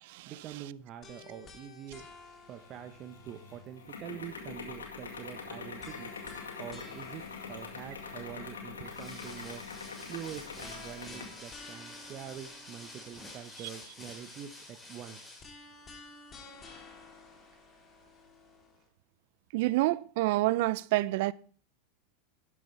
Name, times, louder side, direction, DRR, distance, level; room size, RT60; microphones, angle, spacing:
voice 1, 0.3-2.1 2.5-6.1 6.6-7.2 7.5-9.6 10.1-15.2, right 9 dB, 40° right, 0.9 m, -45 dB
sound 1, 1.0-4.2 5.8-8.8 10.6-13.8 15.4-18.8, left 3 dB, 30° left, 3.1 m, -53 dB
sound 2, 2.6-11.4, left 5 dB, 85° left, 2.0 m, -44 dB
sound 3, 8.8-15.5, left 1 dB, 15° left, 5.0 m, -49 dB
voice 2, 19.5-21.3, right 18 dB, 60° right, 0.4 m, -28 dB
11.5 x 11.0 x 3.3 m
hypercardioid pair, 95°, 0 cm